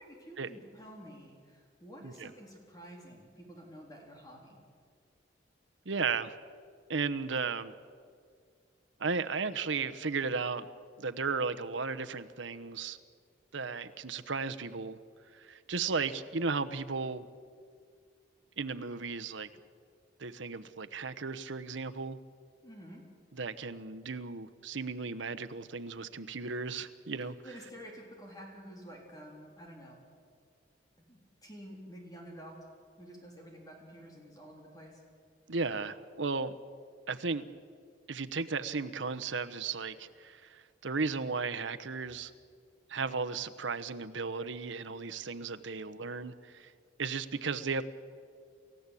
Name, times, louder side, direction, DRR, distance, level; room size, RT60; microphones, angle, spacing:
voice 1, 0.0-4.6 22.6-23.0 27.2-30.0 31.0-32.6 33.0-35.0, equal, 20° left, 0 dB, 3.9 m, -50 dB
voice 2, 5.8-6.3 6.9-7.7 9.0-10.7 11.0-13.0 13.5-15.0 15.3-17.3 18.6-19.5 20.2-22.2 23.3-27.4 35.5-36.6 37.1-37.5 38.1-42.3 42.9-46.7 47.0-47.8, right 4 dB, 80° right, 10 dB, 1.0 m, -35 dB
29.0 x 15.0 x 8.4 m, 2.1 s
head